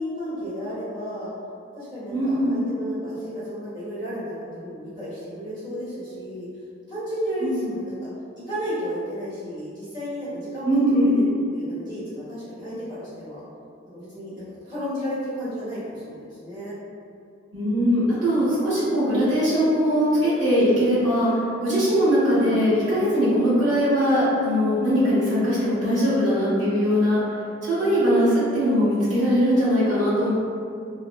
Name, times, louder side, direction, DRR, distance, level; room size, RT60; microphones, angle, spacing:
voice 1, 0.0-1.3 1.7-6.5 6.9-8.1 8.5-10.7 11.0-13.4 13.9-16.7 21.6-22.0, equal, 25° right, -13 dB, 1.3 m, -33 dB
voice 2, 2.1-2.6 7.4-7.6 10.6-11.2 17.5-27.2 27.6-30.3, equal, 65° right, -13 dB, 1.5 m, -21 dB
3.0 x 2.7 x 2.2 m, 2.5 s
head